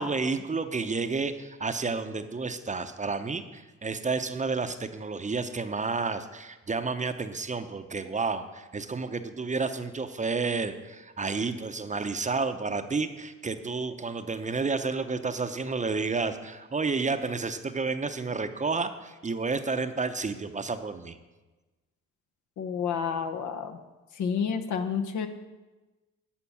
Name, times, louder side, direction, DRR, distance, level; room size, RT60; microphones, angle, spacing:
voice 1, 0.0-21.2, right 4 dB, 25° right, 9 dB, 0.8 m, -31 dB
voice 2, 22.6-23.8 24.1-25.3, left 6 dB, 70° left, 7 dB, 1.1 m, -30 dB
11.5 x 5.2 x 8.6 m, 1.2 s
cardioid pair, 90°, 30 cm